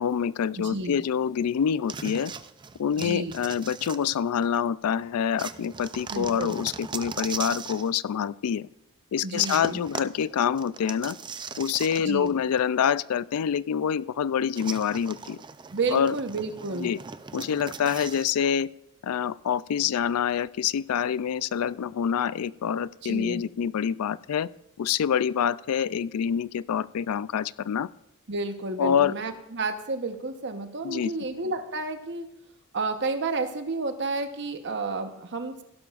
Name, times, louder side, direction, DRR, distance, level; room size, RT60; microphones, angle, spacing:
voice 1, 0.0-2.3 2.8-8.7 9.1-11.2 11.6-15.4 15.9-16.1 16.7-17.0 17.3-18.7 19.0-24.5 24.8-27.9 28.8-29.1 30.8-31.1, left 8 dB, 75° left, 18 dB, 0.4 m, -26 dB
voice 2, 0.6-1.0 3.0-3.3 6.1-6.5 9.2-9.8 12.0-12.3 15.7-16.9 23.0-23.4 28.3-32.3 32.7-35.6, right 3 dB, 55° right, 7 dB, 1.0 m, -31 dB
sound 1, 1.9-4.6 5.4-7.9 9.4-12.3 12.6-12.7 14.5-18.3, right 5 dB, 20° right, 0.4 m, -39 dB
16.5 x 12.0 x 2.5 m, 0.85 s
head